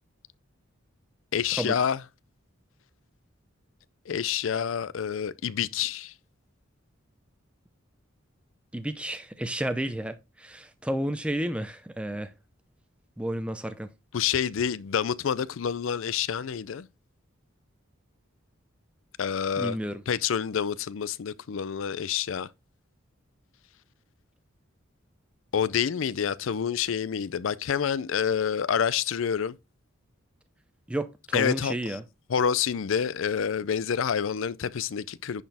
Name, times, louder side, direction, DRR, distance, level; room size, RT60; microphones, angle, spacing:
voice 1, 1.3-2.0 4.1-6.1 14.1-16.9 19.2-19.8 20.1-22.5 25.5-29.6 31.3-32.0 32.3-35.4, left 7 dB, 70° left, 0.4 m, -28 dB
voice 2, 8.7-12.3 13.2-13.9 19.6-20.0 30.9-32.0, right 1 dB, 5° right, 0.5 m, -31 dB
10.0 x 4.3 x 3.4 m
head